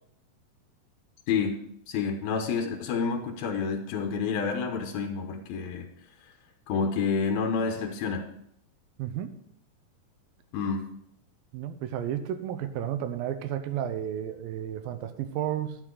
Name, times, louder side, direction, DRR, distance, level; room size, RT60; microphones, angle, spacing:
voice 1, 1.3-1.6 1.9-5.9 6.7-8.2 10.5-10.8, left 5 dB, 85° left, 4 dB, 2.9 m, -29 dB
voice 2, 9.0-9.3 11.5-15.8, right 10 dB, 85° right, 10 dB, 2.6 m, -32 dB
11.0 x 9.7 x 3.9 m, 0.72 s
omnidirectional pair, 4.1 m